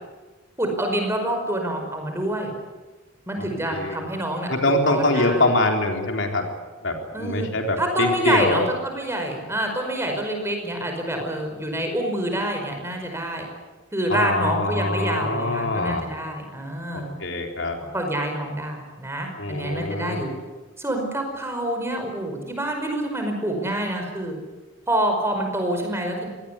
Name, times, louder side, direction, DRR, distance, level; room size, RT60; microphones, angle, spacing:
voice 1, 0.6-2.5 3.3-5.4 7.1-7.5 7.8-13.5 13.9-17.1 17.9-20.3 20.8-24.4 24.9-26.3, right 1 dB, 10° right, 3 dB, 5.2 m, -27 dB
voice 2, 3.7-4.0 4.5-6.5 6.8-8.6 14.1-16.0 16.9-17.8 19.4-20.2, left 2 dB, 60° left, 3 dB, 3.9 m, -24 dB
25.0 x 19.5 x 8.4 m, 1.3 s
head